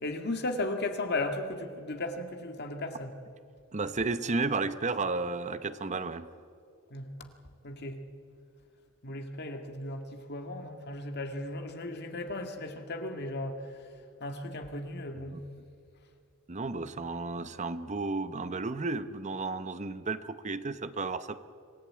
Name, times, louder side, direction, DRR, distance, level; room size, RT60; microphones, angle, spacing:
voice 1, 0.0-3.1 6.9-7.3 7.6-8.0 9.0-13.9 14.2-15.4, left 2 dB, 50° left, 5 dB, 1.9 m, -36 dB
voice 2, 3.7-6.3 15.1-15.4 16.5-21.4, right 3 dB, 35° right, 12 dB, 0.8 m, -33 dB
26.0 x 15.5 x 8.7 m, 2.4 s
head